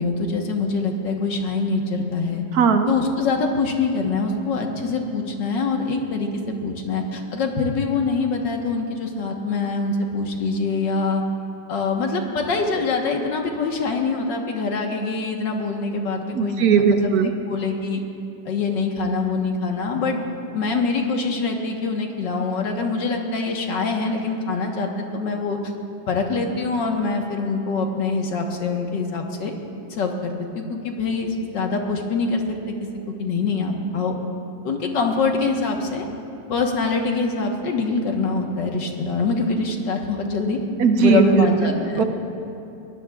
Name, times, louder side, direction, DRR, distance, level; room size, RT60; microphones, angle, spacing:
voice 1, 0.0-2.4 2.9-11.2 11.7-18.0 18.5-20.2 20.5-25.6 26.1-29.5 29.9-32.6 33.2-34.1 34.6-36.1 36.5-40.6 41.0-42.0, left 4 dB, 65° left, 2 dB, 1.9 m, -24 dB
voice 2, 2.5-2.9 16.3-17.3 40.8-42.0, right 6 dB, 60° right, 7 dB, 1.0 m, -18 dB
22.5 x 19.0 x 2.4 m, 2.8 s
omnidirectional pair, 2.1 m